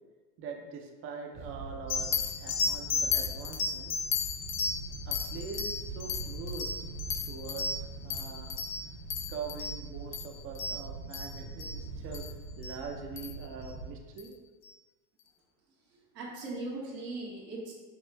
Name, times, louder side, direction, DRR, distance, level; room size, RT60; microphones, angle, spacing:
voice 1, 0.4-3.9 5.1-6.8 7.2-8.5 9.3-12.3 12.6-14.3, right 5 dB, 30° right, 1 dB, 0.5 m, -43 dB
sound 1, 1.3-13.9, right 3 dB, 65° right, 1.3 m, -43 dB
sound 2, 1.9-11.8 12.1-12.3 12.6-12.7 13.2-13.4 14.2-14.3, left 5 dB, 30° left, 0.4 m, -34 dB
voice 2, 15.9-17.7, right 2 dB, 90° right, -4 dB, 1.4 m, -39 dB
5.4 x 2.4 x 3.2 m, 1.3 s
hypercardioid pair, 100°, 48 cm